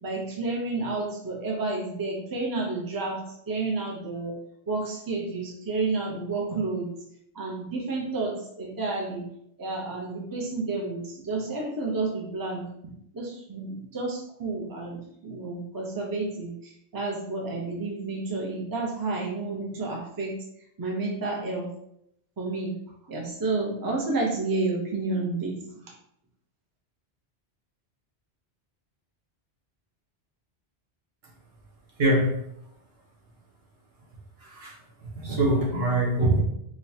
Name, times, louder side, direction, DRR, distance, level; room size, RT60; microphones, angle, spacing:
voice 1, 0.0-4.4 4.7-6.9 7.3-9.3 9.6-12.7 13.1-20.4 20.8-21.7 22.4-22.7 23.1-25.5, right 3 dB, 25° right, -1 dB, 0.6 m, -30 dB
voice 2, 32.0-32.4 34.4-34.7 35.0-36.4, right 1 dB, 65° right, -2 dB, 1.1 m, -23 dB
5.0 x 2.3 x 2.7 m, 0.74 s
omnidirectional pair, 1.1 m